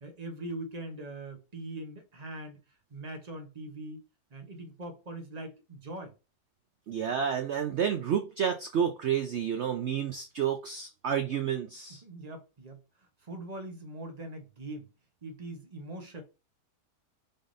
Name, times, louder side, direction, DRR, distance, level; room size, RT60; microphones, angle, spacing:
voice 1, 0.0-2.6 2.9-4.0 4.3-6.1 12.0-14.9 15.2-16.2, right 1 dB, 35° right, 0.7 m, -42 dB
voice 2, 6.9-12.0, right 8 dB, 75° right, 0.6 m, -30 dB
5.5 x 3.6 x 2.6 m
omnidirectional pair, 1.8 m